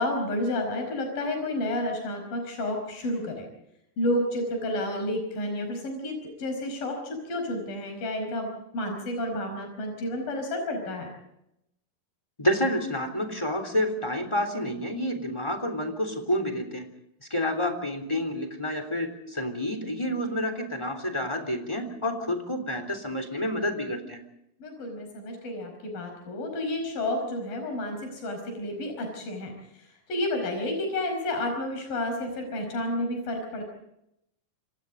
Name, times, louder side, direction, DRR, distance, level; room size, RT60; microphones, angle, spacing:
voice 1, 0.0-3.5 4.0-11.1 24.6-29.5 30.1-33.6, left 1 dB, 70° left, 4 dB, 6.8 m, -30 dB
voice 2, 12.4-16.9 17.3-24.2, left 1 dB, 10° left, 7 dB, 2.9 m, -29 dB
28.5 x 26.0 x 3.9 m, 0.81 s
omnidirectional pair, 4.1 m